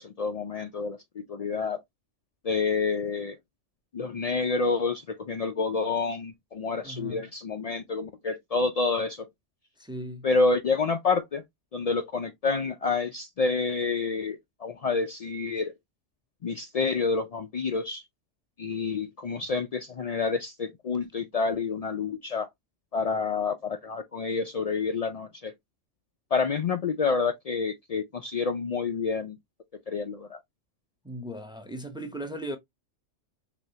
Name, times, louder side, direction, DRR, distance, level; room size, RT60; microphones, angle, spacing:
voice 1, 0.0-1.8 2.4-3.4 3.9-9.3 10.2-11.4 11.7-15.7 16.4-18.0 18.6-22.5 22.9-25.5 26.3-29.4 29.9-30.4, left 4 dB, 80° left, 0.3 m, -28 dB
voice 2, 6.8-7.3 9.8-10.3 31.0-32.6, right 1 dB, 5° right, 0.5 m, -37 dB
5.1 x 3.0 x 2.7 m
omnidirectional pair, 1.3 m